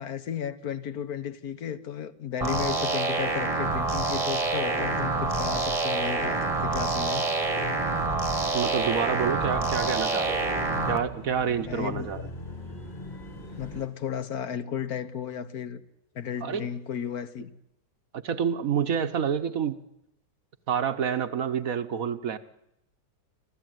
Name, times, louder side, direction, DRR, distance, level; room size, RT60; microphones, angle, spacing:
voice 1, 0.0-7.3 11.5-12.1 13.5-15.8 16.1-17.5, left 9 dB, 55° left, 1.5 m, -34 dB
sound 1, 2.4-11.0, right 3 dB, 20° right, 1.3 m, -27 dB
sound 2, 3.7-13.9, left 2 dB, 25° left, 1.9 m, -42 dB
voice 2, 8.5-10.5 10.9-12.2 16.4-16.7 18.1-19.8 20.7-22.4, right 7 dB, 50° right, 1.3 m, -28 dB
26.0 x 15.0 x 9.2 m
omnidirectional pair, 2.1 m